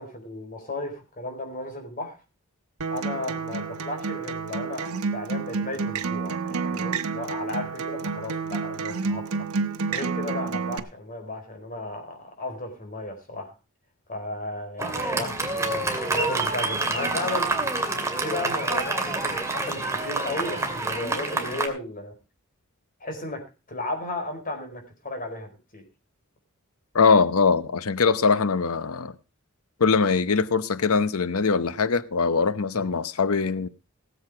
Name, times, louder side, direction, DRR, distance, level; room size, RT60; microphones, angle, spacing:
voice 1, 0.0-2.2 2.9-9.5 9.9-13.5 14.1-15.3 15.6-17.5 18.1-22.1 23.0-23.4 23.7-25.8 32.8-32.9, left 2 dB, 40° left, 4.6 m, -34 dB
Acoustic guitar, 2.8-10.8, right 4 dB, 80° right, 1.0 m, -29 dB
Fireworks, 14.8-21.7, right 2 dB, 15° right, 2.4 m, -27 dB
voice 2, 26.9-29.1 29.8-33.7, left 5 dB, 75° left, 0.8 m, -22 dB
17.5 x 8.0 x 4.8 m
head